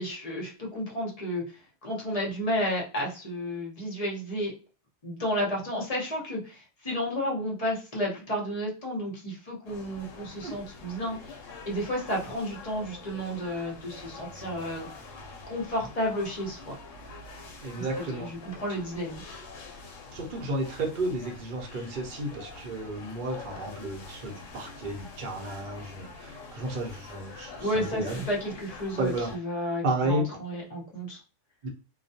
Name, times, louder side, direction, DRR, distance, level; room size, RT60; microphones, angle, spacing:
voice 1, 0.0-4.5 5.0-11.2 11.7-15.1 15.4-16.8 17.8-19.2 27.6-31.2, equal, 35° left, -2 dB, 0.7 m, -32 dB
sound 1, 9.6-29.4, left 3 dB, 80° left, 1.0 m, -45 dB
voice 2, 17.6-18.3 20.1-28.2 29.0-29.3 29.8-30.3 31.6-31.7, right 1 dB, 45° right, 0 dB, 0.8 m, -32 dB
2.3 x 2.2 x 2.7 m, 0.35 s
omnidirectional pair, 1.3 m